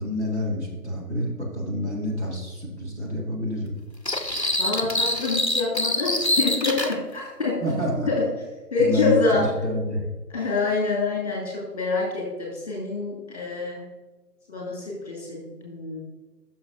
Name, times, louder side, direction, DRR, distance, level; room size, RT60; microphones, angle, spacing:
voice 1, 0.0-3.8 7.6-8.1 8.8-10.1, equal, 45° right, -3 dB, 1.8 m, -28 dB
sound 1, 4.1-7.0, left 1 dB, 45° left, 0.5 m, -25 dB
voice 2, 4.6-7.6 8.1-8.2 8.7-9.4 10.3-13.8 14.5-16.0, left 3 dB, 25° left, -4 dB, 2.0 m, -26 dB
11.0 x 6.3 x 2.5 m, 1.2 s
figure-of-eight pair, 170°, 49 cm